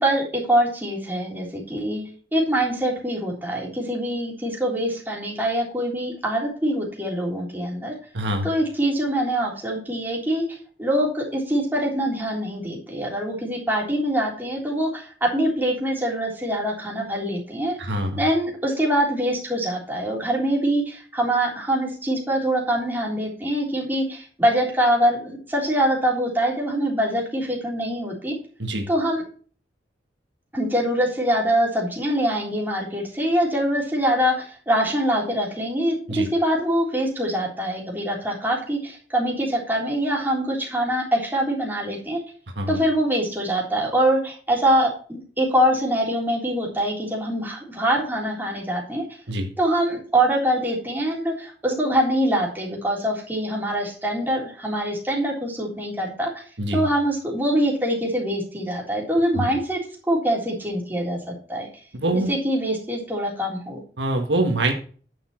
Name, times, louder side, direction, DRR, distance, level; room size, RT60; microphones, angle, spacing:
voice 1, 0.0-7.9 8.4-17.8 18.2-28.3 28.9-29.2 30.5-42.2 42.7-49.0 49.6-56.4 56.7-59.8 60.1-61.7 62.1-63.8, right 1 dB, 10° right, -3 dB, 3.6 m, -24 dB
voice 2, 8.1-8.5 17.8-18.2 28.6-28.9 36.1-36.3 42.6-42.8 49.3-49.5 56.6-56.8 59.4-59.5 61.9-62.3 64.0-64.7, right 1 dB, 75° right, 4 dB, 1.6 m, -24 dB
10.0 x 7.1 x 4.4 m, 0.41 s
head